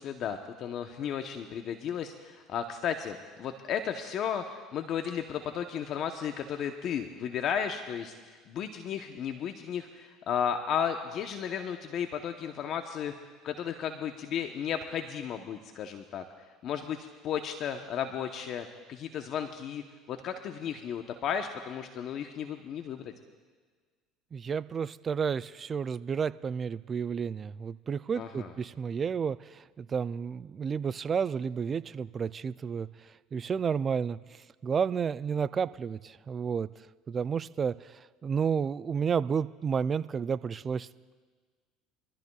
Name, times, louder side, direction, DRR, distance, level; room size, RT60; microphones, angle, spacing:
voice 1, 0.0-8.1 8.5-13.1 13.4-23.1 28.2-28.5, left 8 dB, 55° left, 6 dB, 0.9 m, -34 dB
voice 2, 24.3-32.9 33.3-34.2 34.6-36.7 37.1-40.9, right 6 dB, 35° right, 16 dB, 0.4 m, -31 dB
25.0 x 13.5 x 2.3 m, 1.5 s
supercardioid pair, 80°, 0 cm